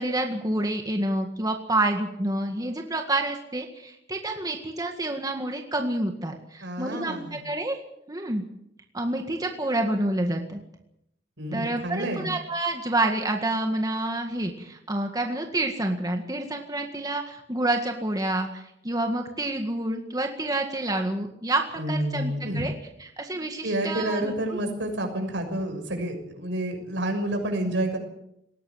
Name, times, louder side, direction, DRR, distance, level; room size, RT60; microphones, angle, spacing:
voice 1, 0.0-7.8 8.1-8.4 8.9-10.6 11.5-22.7 23.0-24.6, right 2 dB, 20° right, 3 dB, 1.8 m, -28 dB
voice 2, 6.6-7.4 11.4-12.3 21.7-22.6 23.6-28.0, right 1 dB, 75° right, 4 dB, 6.5 m, -29 dB
20.0 x 17.5 x 8.1 m, 0.78 s
head